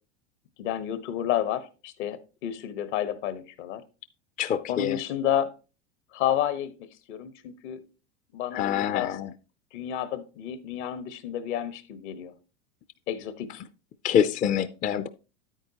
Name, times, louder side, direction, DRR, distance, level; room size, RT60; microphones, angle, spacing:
voice 1, 0.6-3.8 4.7-5.5 6.1-6.7 7.1-7.8 8.3-9.2 9.7-12.3 13.1-13.6, left 10 dB, 70° left, 1.3 m, -30 dB
voice 2, 4.4-5.0 8.5-9.3 14.0-15.1, left 9 dB, 25° left, 0.4 m, -25 dB
9.2 x 9.0 x 2.9 m
hypercardioid pair, 110°, 36 cm